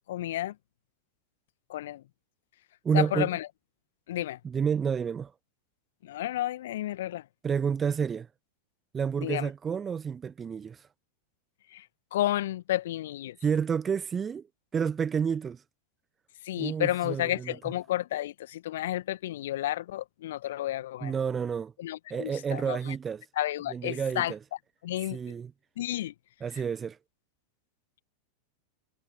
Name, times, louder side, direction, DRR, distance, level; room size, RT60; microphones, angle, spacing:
voice 1, 0.1-0.5 1.7-2.0 2.9-3.5 4.1-4.4 6.0-7.2 9.2-9.5 11.7-11.9 12.1-13.4 16.4-21.1 21.8-22.9 23.4-24.3 24.8-25.2 25.8-26.1, left 14 dB, 55° left, 1.4 m, -31 dB
voice 2, 2.8-3.3 4.4-5.3 7.4-8.3 8.9-10.8 13.4-14.5 14.7-15.6 16.6-17.6 21.0-21.7 22.1-23.2 23.7-24.4 25.1-25.5 26.4-27.0, right 7 dB, 20° right, 0.9 m, -29 dB
figure-of-eight pair, 90°, 0 cm